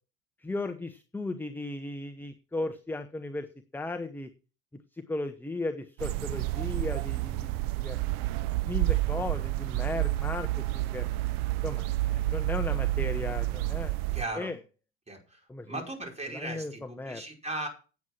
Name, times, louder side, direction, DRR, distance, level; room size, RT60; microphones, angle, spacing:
voice 1, 0.4-3.5 3.7-4.3 4.9-8.0 8.6-10.5 10.7-11.1 11.6-14.1 14.3-14.6 15.5-15.8 16.3-17.2, left 2 dB, 5° left, 8 dB, 1.0 m, -36 dB
sound 1, 6.0-14.2, right 17 dB, 65° right, 0.9 m, -29 dB
voice 2, 14.1-14.5 15.1-17.7, right 1 dB, 20° right, 2 dB, 5.1 m, -37 dB
9.4 x 8.1 x 6.0 m, 0.34 s
hypercardioid pair, 85°, 36 cm